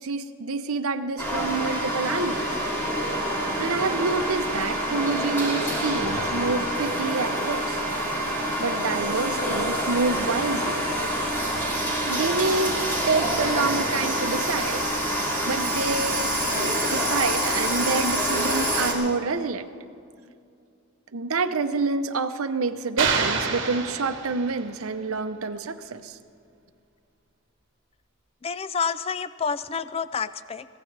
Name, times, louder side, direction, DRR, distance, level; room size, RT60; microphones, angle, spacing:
voice 1, 0.0-2.6 3.6-7.8 8.6-10.8 12.1-12.7 13.1-14.8 15.5-19.7 21.1-26.2, right 4 dB, 75° right, 10 dB, 0.7 m, -27 dB
sound 1, 1.2-18.9, equal, 10° left, 2.8 m, -26 dB
sound 2, 1.2-18.7, right 1 dB, 15° right, 1.4 m, -40 dB
sound 3, 23.0-24.7, right 5 dB, 55° right, 1.6 m, -27 dB
voice 2, 28.4-30.7, left 5 dB, 25° left, 14 dB, 0.3 m, -29 dB
24.0 x 16.5 x 3.3 m, 2.4 s
head